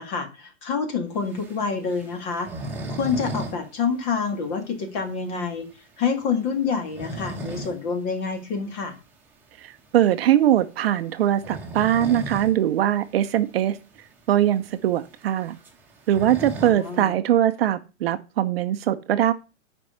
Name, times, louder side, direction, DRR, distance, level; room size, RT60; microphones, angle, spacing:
voice 1, 0.0-2.5 2.9-5.7 6.0-8.9 16.6-17.2, left 5 dB, 30° left, 1.8 m, -27 dB
sound 1, 1.3-3.6 3.9-4.0 4.4-4.5 5.0-5.1 6.6-7.8 8.2-8.3 9.9-10.1 11.3-12.6 12.9-13.0 13.3-13.4 14.1-14.2 14.4-17.0, right 1 dB, 5° right, 1.6 m, -35 dB
voice 2, 9.6-13.8 14.3-15.6 16.1-19.3, right 11 dB, 50° right, 0.8 m, -21 dB
9.7 x 5.4 x 5.6 m
supercardioid pair, 165°, 39 cm